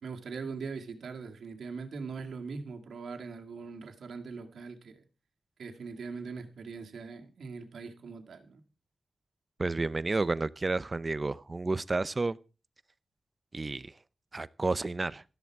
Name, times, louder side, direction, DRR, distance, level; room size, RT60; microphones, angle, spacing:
voice 1, 0.0-5.0 5.6-8.6, right 4 dB, 90° right, 2.1 m, -41 dB
voice 2, 9.6-12.4 13.5-13.9 14.3-15.2, right 3 dB, 25° right, 0.6 m, -31 dB
13.5 x 13.5 x 4.7 m
wide cardioid pair, 160°, 0 cm